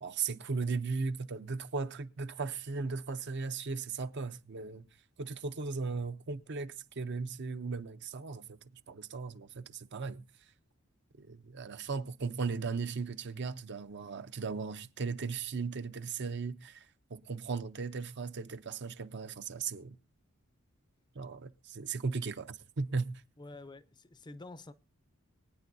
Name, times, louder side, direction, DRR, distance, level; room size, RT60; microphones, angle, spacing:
voice 1, 0.0-4.8 5.2-8.6 8.9-10.2 11.2-20.0 21.1-23.2, right 4 dB, 55° right, 0.7 m, -37 dB
voice 2, 23.4-24.7, left 2 dB, 20° left, 0.5 m, -48 dB
24.5 x 9.1 x 2.7 m
head